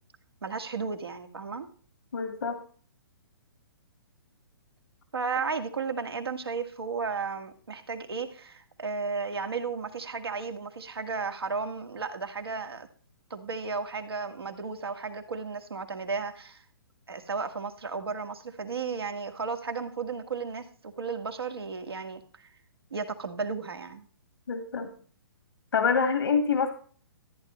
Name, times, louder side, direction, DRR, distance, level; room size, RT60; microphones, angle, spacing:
voice 1, 0.4-1.7 5.1-12.9 13.3-16.6 17.1-22.5 22.9-24.1, right 5 dB, 80° right, 5 dB, 1.8 m, -34 dB
voice 2, 2.1-2.6 24.5-24.9 25.7-26.7, left 5 dB, 75° left, 7 dB, 1.7 m, -26 dB
14.0 x 9.6 x 3.1 m, 0.43 s
hypercardioid pair, 130°, 13 cm